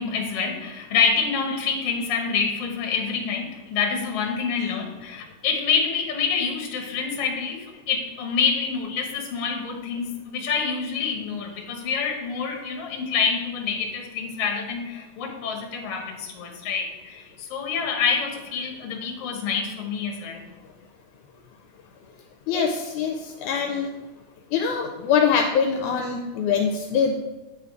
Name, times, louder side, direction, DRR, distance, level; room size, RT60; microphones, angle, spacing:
voice 1, 0.0-20.4, left 5 dB, 60° left, 1 dB, 1.9 m, -27 dB
voice 2, 22.5-23.9 24.5-27.2, left 6 dB, 80° left, 3 dB, 1.9 m, -24 dB
8.7 x 3.7 x 4.6 m, 1.2 s
omnidirectional pair, 3.6 m